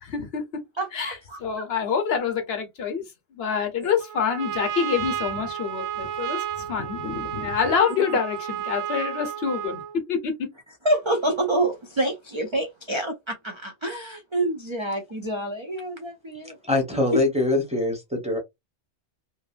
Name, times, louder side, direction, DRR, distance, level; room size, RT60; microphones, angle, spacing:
voice 1, 0.0-0.6 0.9-3.0 3.3-10.4, left 6 dB, 65° left, 0.9 m, -27 dB
voice 2, 0.8-1.7 3.8-3.9 10.8-16.6 17.1-17.2, right 1 dB, 45° right, 0.3 m, -27 dB
Trumpet, 4.0-10.0, right 10 dB, 80° right, 0.9 m, -32 dB
voice 3, 16.6-18.4, left 2 dB, 5° right, 0.8 m, -23 dB
2.7 x 2.5 x 2.4 m
omnidirectional pair, 1.2 m